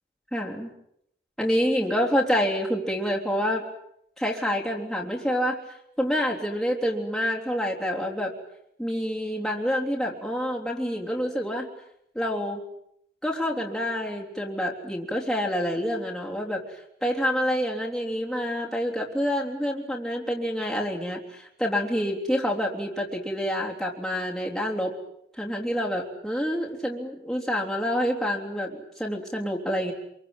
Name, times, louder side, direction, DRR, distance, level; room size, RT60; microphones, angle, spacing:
voice 1, 0.3-0.7 1.4-3.6 4.2-5.6 6.0-8.3 8.8-11.7 12.2-12.6 13.2-16.6 17.0-24.9 25.4-29.9, equal, ahead, -3 dB, 3.6 m, -27 dB
27.0 x 23.0 x 9.2 m, 0.75 s
head